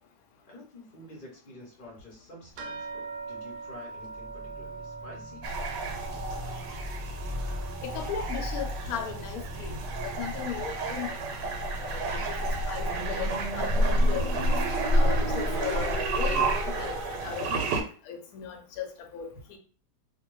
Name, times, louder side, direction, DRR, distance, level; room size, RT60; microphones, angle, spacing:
voice 1, 0.5-5.5, left 1 dB, 40° left, -2 dB, 0.7 m, -49 dB
sound 1, 2.6-11.4 11.7-12.6 13.3-13.4 13.9-14.0, right 4 dB, 75° right, 1.1 m, -44 dB
sound 2, 4.1-17.4, equal, 30° right, 0.7 m, -39 dB
sound 3, 5.4-17.8, right 1 dB, 90° right, 1.3 m, -29 dB
voice 2, 7.8-11.2 11.8-14.4 14.9-19.6, left 7 dB, 65° left, 3 dB, 1.0 m, -37 dB
2.6 x 2.5 x 3.0 m, 0.41 s
omnidirectional pair, 1.9 m